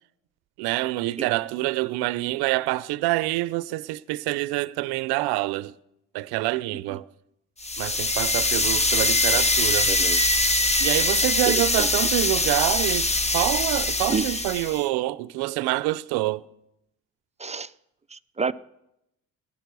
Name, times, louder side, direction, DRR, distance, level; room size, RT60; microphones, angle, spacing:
voice 1, 0.6-5.7 6.1-7.1 7.8-9.9 10.8-16.5, right 18 dB, 85° right, 0.6 m, -26 dB
sound 1, 7.6-14.8, left 2 dB, 15° left, 1.0 m, -23 dB
voice 2, 9.9-10.2 11.5-11.9 14.1-14.4 17.4-17.7 18.1-18.5, right 5 dB, 20° right, 0.5 m, -29 dB
16.0 x 11.0 x 6.8 m
supercardioid pair, 75°, 37 cm